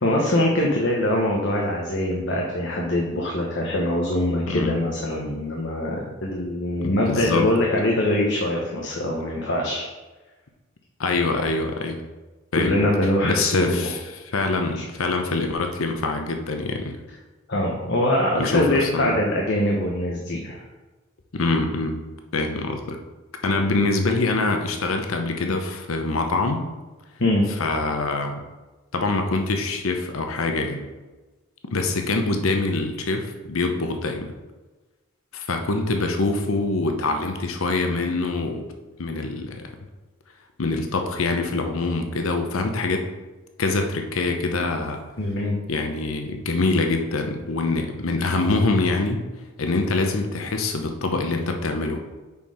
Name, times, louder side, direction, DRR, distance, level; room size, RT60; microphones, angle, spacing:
voice 1, 0.0-9.8 12.6-13.9 14.5-14.8 17.5-20.6 27.2-27.5 45.2-45.6, left 1 dB, 60° left, -2 dB, 1.1 m, -23 dB
voice 2, 4.5-4.8 6.8-7.5 11.0-12.0 12.5-12.9 13.2-17.0 18.4-19.1 21.3-22.0 22.3-23.0 23.4-26.7 27.6-28.4 28.9-30.9 31.7-34.3 35.3-38.7 39.0-39.7 40.6-43.1 43.6-45.0 45.7-49.3 49.6-52.0, left 3 dB, 90° left, 5 dB, 0.8 m, -24 dB
7.1 x 4.5 x 4.9 m, 1.2 s
head